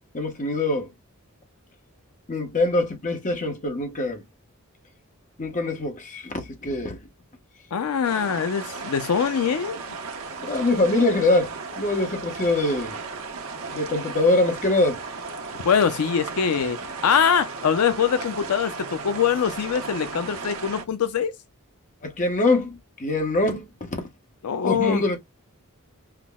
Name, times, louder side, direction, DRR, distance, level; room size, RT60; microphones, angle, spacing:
voice 1, 0.1-0.9 2.3-4.2 5.4-7.0 10.4-13.0 13.7-15.0 22.0-24.0 24.6-25.2, left 2 dB, 35° left, 0.9 m, -24 dB
voice 2, 7.7-9.8 15.7-21.3 24.4-25.0, left 7 dB, 80° left, 0.4 m, -23 dB
sound 1, 8.0-20.8, right 4 dB, 70° right, 0.9 m, -35 dB
5.7 x 2.0 x 2.2 m
head